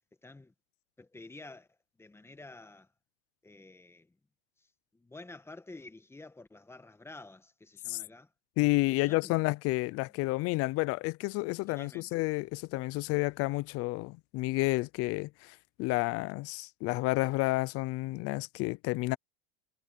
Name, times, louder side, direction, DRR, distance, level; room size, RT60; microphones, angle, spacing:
voice 1, 0.2-0.5 1.0-1.7 2.0-2.9 3.4-4.2 4.6-8.3 8.9-9.5 11.7-12.2, left 2 dB, 10° left, 1.5 m, -50 dB
voice 2, 8.6-19.2, left 21 dB, 50° left, 0.7 m, -30 dB
supercardioid pair, 120°, 30 cm